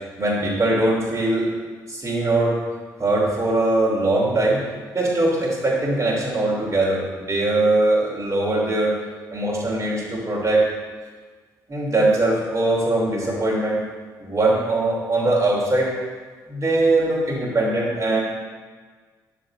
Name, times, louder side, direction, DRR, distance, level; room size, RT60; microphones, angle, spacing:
voice 1, 0.2-1.5 1.9-2.6 3.0-4.6 4.9-9.0 9.3-10.7 11.7-13.8 14.2-15.9 16.5-18.2, right 2 dB, 30° right, -4 dB, 2.9 m, -21 dB
8.4 x 6.7 x 4.4 m, 1.4 s
figure-of-eight pair, 45°, 10 cm